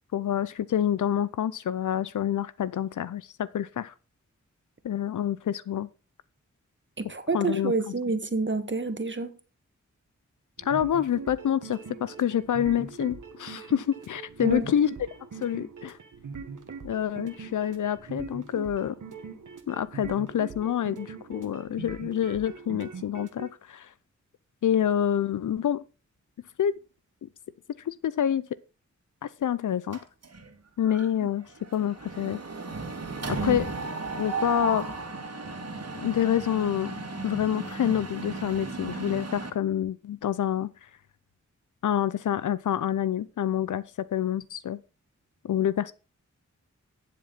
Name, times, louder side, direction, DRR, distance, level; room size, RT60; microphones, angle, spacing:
voice 1, 0.1-3.9 4.8-5.9 7.3-7.7 10.6-14.9 15.4-16.0 16.8-19.0 19.7-23.9 24.6-25.8 26.6-26.7 27.2-27.3 27.9-28.4 29.2-30.0 30.8-32.4 33.3-33.7 34.2-34.9 35.9-36.9 37.2-40.7 41.8-43.8 44.1-44.8 45.4-45.9, left 10 dB, 80° left, 0.5 m, -27 dB
voice 2, 7.0-9.3 14.4-14.7 31.2-31.3, right 3 dB, 40° right, 1.6 m, -28 dB
sound 1, 10.6-23.5, right 5 dB, 85° right, 1.5 m, -42 dB
Mechanisms, 29.9-30.5 30.9-31.1 31.3-39.5, right 3 dB, 55° right, 2.1 m, -35 dB
11.5 x 7.5 x 4.0 m
cardioid pair, 45°, 30 cm